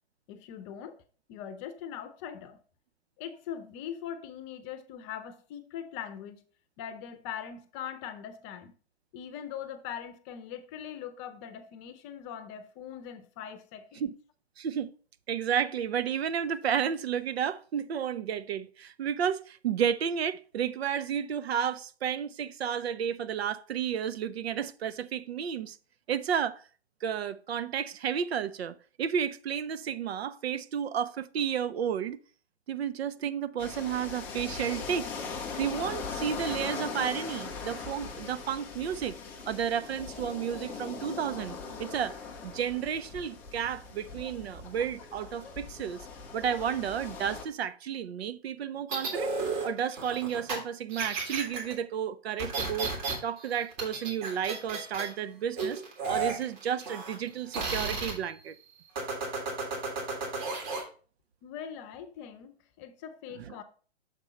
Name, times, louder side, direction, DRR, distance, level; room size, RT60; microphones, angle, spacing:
voice 1, 0.3-1.0 1.3-2.6 3.2-6.4 6.8-8.7 9.1-14.0 61.4-63.6, left 9 dB, 25° left, 0.7 m, -41 dB
voice 2, 14.6-14.9 15.3-25.8 26.1-26.6 27.0-32.2 32.7-35.1 35.6-39.2 39.5-46.1 46.3-49.4 49.6-52.9 53.2-55.8 56.1-58.5 63.4-63.5, right 8 dB, 65° right, 0.6 m, -32 dB
sound 1, 33.6-47.4, left 5 dB, 5° left, 0.3 m, -40 dB
sound 2, 48.9-50.6 50.9-51.7 52.4-53.1 53.4-55.1 55.6-57.3 57.5-58.1 59.0-60.8, right 4 dB, 45° right, 3.3 m, -33 dB
6.6 x 5.2 x 4.2 m
hypercardioid pair, 135°, 33 cm